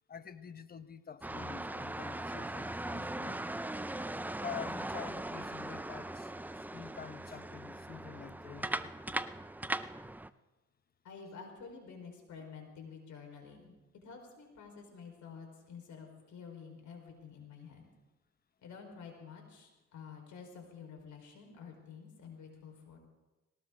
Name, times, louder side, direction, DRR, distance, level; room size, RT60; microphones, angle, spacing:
voice 1, 0.1-3.5 4.4-8.9, left 7 dB, 30° left, 0.9 m, -47 dB
sound 1, 1.2-10.3, right 1 dB, 5° right, 0.5 m, -39 dB
voice 2, 11.0-13.7 14.0-17.9 18.6-23.0, left 6 dB, 70° left, 4.5 m, -50 dB
19.5 x 19.0 x 3.8 m
cardioid pair, 90°, 30 cm